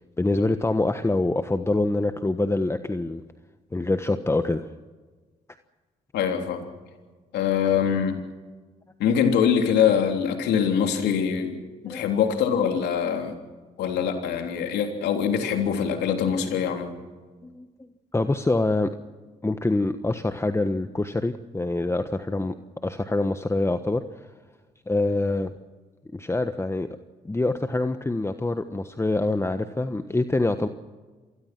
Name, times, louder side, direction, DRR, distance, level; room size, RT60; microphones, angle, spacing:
voice 1, 0.2-3.2 3.7-4.7 11.9-12.0 17.4-17.7 18.1-18.9 19.4-22.5 22.8-24.0 24.9-25.5 26.1-26.9 27.2-30.7, left 2 dB, 15° left, 9 dB, 1.3 m, -25 dB
voice 2, 6.1-6.7 7.3-8.2 9.0-11.6 11.8-13.4 13.8-16.9, left 7 dB, 75° left, 4 dB, 3.4 m, -23 dB
26.5 x 20.0 x 6.1 m, 1.4 s
supercardioid pair, 60°, 17 cm